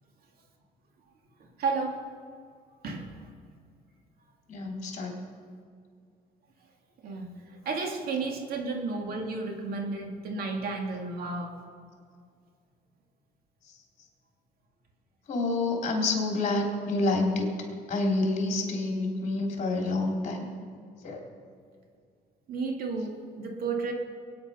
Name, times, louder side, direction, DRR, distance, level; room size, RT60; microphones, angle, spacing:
voice 1, 1.6-2.0 2.8-3.3 7.0-7.3 7.7-11.6 22.5-23.9, right 4 dB, 60° right, 2 dB, 2.3 m, -32 dB
voice 2, 4.5-5.2 15.3-17.5 17.9-20.4 21.0-21.2, left 2 dB, 45° left, 1 dB, 3.2 m, -28 dB
22.0 x 9.4 x 5.6 m, 2.2 s
cardioid pair, 110°, 17 cm